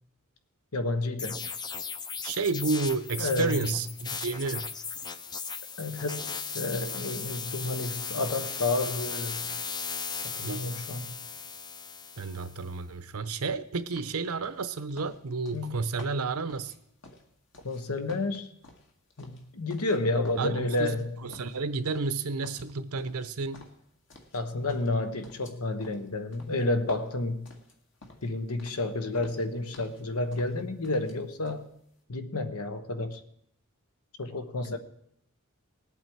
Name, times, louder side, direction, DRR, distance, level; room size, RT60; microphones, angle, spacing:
voice 1, 0.7-1.5 3.2-3.7 5.8-9.5 10.3-11.2 15.5-15.8 17.6-18.5 19.2-21.2 24.3-27.5 28.2-31.7 32.1-33.2 34.2-34.8, left 2 dB, 80° left, 1.1 m, -30 dB
sound 1, 1.2-12.6, left 5 dB, 20° left, 0.5 m, -37 dB
voice 2, 2.2-4.7 10.4-10.7 12.2-16.7 20.4-20.9 21.2-23.6, right 4 dB, 75° right, 0.7 m, -31 dB
sound 2, 13.9-17.8 18.1-20.0 20.2-21.0 21.3-22.2 22.4-24.4 24.7-28.3 28.6-28.9 29.1-30.0 30.3-31.2 31.4-31.6, left 2 dB, 60° left, 2.0 m, -52 dB
19.0 x 8.2 x 4.6 m
head